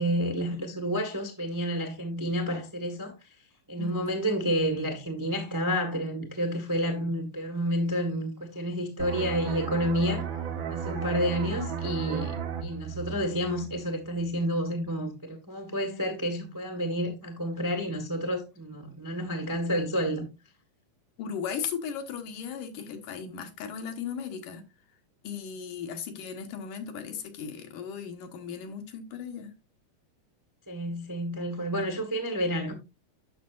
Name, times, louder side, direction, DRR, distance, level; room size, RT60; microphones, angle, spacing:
voice 1, 0.0-3.1 3.7-10.3 10.7-20.3 30.7-32.7, equal, 25° right, 0.4 m, -30 dB
sound 1, 9.0-14.4 14.7-15.0, right 7 dB, 90° right, 1.0 m, -35 dB
voice 2, 21.2-24.6 25.2-29.5, left 7 dB, 75° left, 2.8 m, -37 dB
10.0 x 6.7 x 2.5 m
omnidirectional pair, 3.7 m